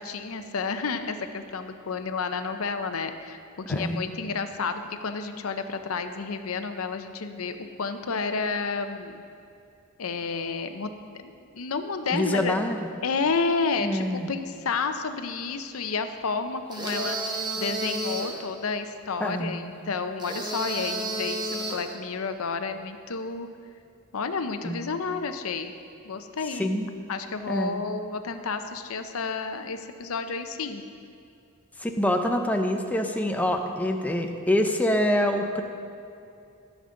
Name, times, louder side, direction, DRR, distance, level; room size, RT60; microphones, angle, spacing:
voice 1, 0.0-9.2 10.0-10.9 11.2-12.5 13.0-23.5 24.1-25.7 26.0-26.8 27.1-30.8, left 4 dB, 80° left, 8 dB, 0.7 m, -31 dB
voice 2, 3.7-4.0 12.1-12.8 13.8-14.3 19.2-19.5 24.6-24.9 26.6-26.9 27.5-27.8 31.8-35.6, left 1 dB, 5° left, 4 dB, 0.7 m, -26 dB
sound 1, 16.7-18.4 20.2-21.9, right 2 dB, 20° right, 1.0 m, -31 dB
14.5 x 7.3 x 3.8 m, 2.5 s
head